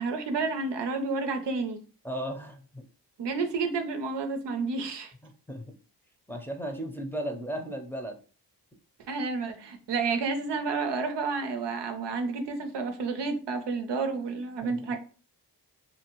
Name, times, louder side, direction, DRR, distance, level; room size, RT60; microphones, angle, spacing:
voice 1, 0.0-1.8 3.2-5.1 9.1-15.0, right 4 dB, 90° right, 6 dB, 0.6 m, -30 dB
voice 2, 2.0-2.8 5.2-5.8 6.3-8.2 14.6-14.8, right 1 dB, 5° left, 2 dB, 0.6 m, -36 dB
2.7 x 2.7 x 2.9 m, 0.37 s
cardioid pair, 65°, 41 cm